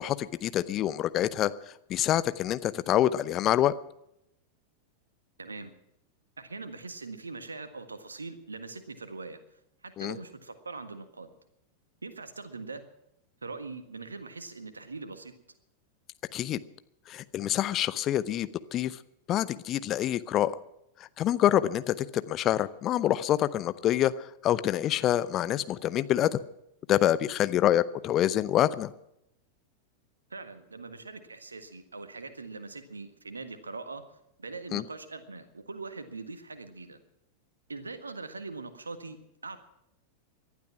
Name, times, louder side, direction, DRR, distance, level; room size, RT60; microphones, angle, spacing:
voice 1, 0.0-1.5 1.9-3.7 10.0-10.2 16.3-16.6 17.1-19.0 19.3-20.5 21.2-26.4 26.9-28.9 34.7-34.8, left 12 dB, 35° left, 15 dB, 0.8 m, -26 dB
voice 2, 5.4-5.7 6.4-9.4 9.8-11.3 12.0-12.8 13.4-15.3 30.3-34.0 34.4-37.0 37.7-39.2 39.4-39.6, right 3 dB, 75° right, 10 dB, 1.6 m, -42 dB
19.0 x 12.0 x 5.9 m, 0.80 s
figure-of-eight pair, 90°, 0 cm